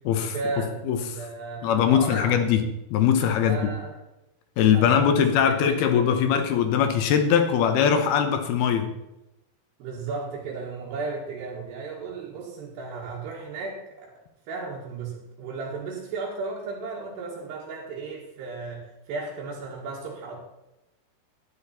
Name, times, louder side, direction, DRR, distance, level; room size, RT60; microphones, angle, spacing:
voice 1, 0.2-2.5 3.4-4.0 4.7-6.0 9.8-14.1 14.5-20.4, right 4 dB, 75° right, -6 dB, 3.8 m, -35 dB
voice 2, 1.6-2.6 2.9-3.6 4.6-8.9, left 8 dB, 70° left, 7 dB, 2.7 m, -21 dB
12.0 x 10.5 x 4.3 m, 0.92 s
omnidirectional pair, 5.0 m